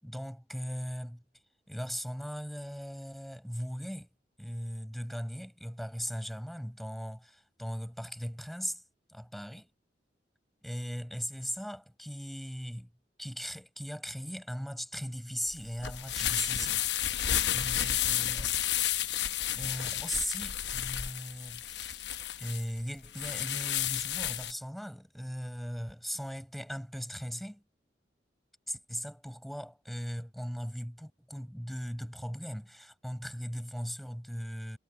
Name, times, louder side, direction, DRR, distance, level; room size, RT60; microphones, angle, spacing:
voice 1, 0.0-1.2 1.7-4.1 4.4-8.8 9.1-9.7 10.6-12.9 13.2-18.6 19.5-22.0 22.4-27.6 28.7-34.8, equal, ahead, 6.2 m, -39 dB
sound 1, 15.5-24.5, left 11 dB, 75° left, 0.9 m, -32 dB
head